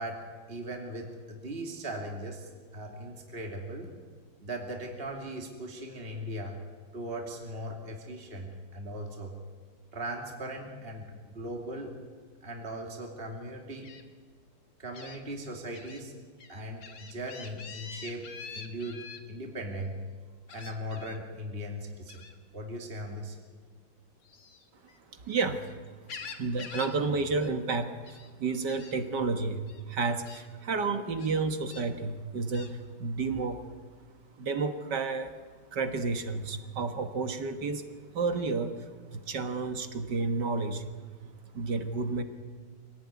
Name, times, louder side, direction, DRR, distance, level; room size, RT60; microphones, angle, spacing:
voice 1, 0.0-3.9 4.4-6.6 6.9-9.3 9.9-12.0 12.4-13.9 14.8-16.1 16.5-19.9 20.5-22.2 22.5-23.4, right 1 dB, 30° right, 1 dB, 2.8 m, -39 dB
Gull seagull, 13.8-14.0 14.9-15.2 15.7-16.0 16.4-19.2 20.5-21.2 22.1-22.4 24.2-25.5 25.8-27.0 27.2-27.5 27.8-28.3 28.7-28.9 29.7-29.8 30.2-30.4 31.2-31.9 32.5-32.7, left 5 dB, 80° left, 2.6 m, -46 dB
voice 2, 25.1-25.8 26.2-33.6 34.4-35.3 35.7-37.8 38.1-40.8 41.5-42.2, right 4 dB, 65° right, 8 dB, 2.1 m, -31 dB
25.0 x 17.5 x 9.6 m, 1.5 s
omnidirectional pair, 2.0 m